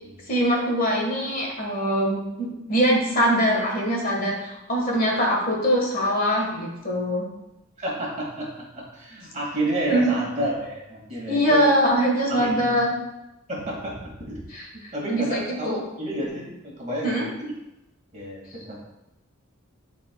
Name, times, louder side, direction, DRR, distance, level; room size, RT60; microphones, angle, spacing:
voice 1, 0.3-7.2 9.9-10.1 11.3-12.9 14.5-15.8 17.0-17.2, equal, 40° left, -1 dB, 1.4 m, -23 dB
voice 2, 7.8-11.7 12.3-12.9 13.5-14.4 14.9-17.5 18.1-18.8, right 1 dB, 35° right, -4 dB, 2.0 m, -30 dB
11.5 x 4.4 x 2.3 m, 0.92 s
head